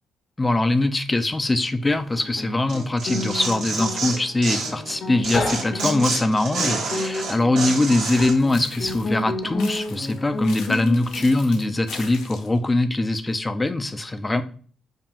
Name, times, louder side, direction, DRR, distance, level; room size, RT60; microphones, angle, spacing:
voice 1, 0.4-14.4, left 2 dB, 20° left, 0.4 m, -22 dB
Guitar, 1.9-11.3, left 2 dB, 60° left, 0.9 m, -31 dB
Tearing, 2.7-4.9 5.2-8.3, right 4 dB, 85° right, 1.3 m, -28 dB
sound 1, 8.1-9.2 9.6-12.6, left 5 dB, 85° left, 0.6 m, -41 dB
5.4 x 2.4 x 2.9 m
cardioid pair, 90°, 0 cm